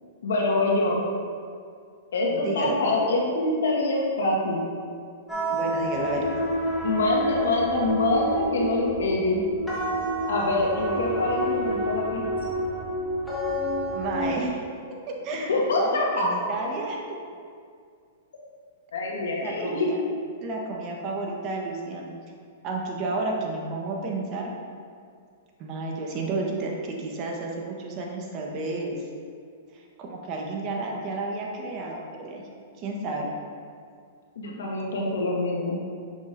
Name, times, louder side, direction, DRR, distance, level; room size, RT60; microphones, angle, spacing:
voice 1, 0.2-1.0 2.1-4.6 6.8-9.4 10.3-12.6 15.5-16.3 18.9-19.9 34.3-35.8, left 2 dB, 80° left, -2 dB, 1.5 m, -25 dB
voice 2, 2.3-2.8 5.5-6.2 13.9-14.6 15.2-17.2 19.4-20.0 20.4-22.1 22.6-24.5 25.6-28.9 29.7-32.4 32.8-33.3, right 3 dB, 40° right, 0 dB, 1.1 m, -31 dB
sound 1, 5.3-14.3, equal, 5° left, 1.5 m, -29 dB
6.9 x 6.0 x 2.6 m, 2.2 s
hypercardioid pair, 130°, 0 cm